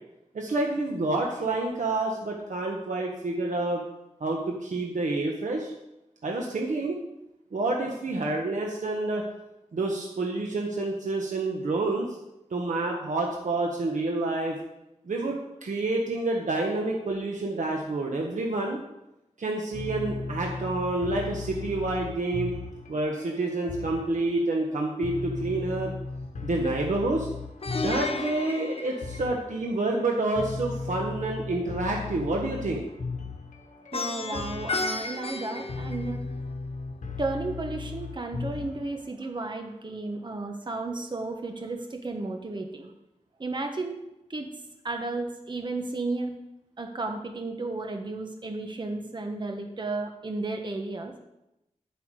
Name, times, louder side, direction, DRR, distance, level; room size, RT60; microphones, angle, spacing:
voice 1, 0.3-3.8 4.2-5.7 6.2-7.0 7.5-9.2 9.7-12.1 12.5-14.6 15.1-18.8 19.4-22.6 22.9-25.9 26.4-27.3 27.8-32.8, right 2 dB, 75° right, 0 dB, 1.4 m, -28 dB
sound 1, 19.7-39.1, left 4 dB, 85° left, 1.4 m, -37 dB
Plucked string instrument, 27.6-29.8 33.9-36.5, left 3 dB, 50° left, 0.9 m, -33 dB
voice 2, 33.9-36.2 37.2-42.9 43.4-44.0 44.3-44.5 44.8-46.3 46.8-51.1, right 3 dB, 35° right, 4 dB, 1.3 m, -33 dB
11.0 x 8.1 x 4.9 m, 0.89 s
wide cardioid pair, 90°, 13 cm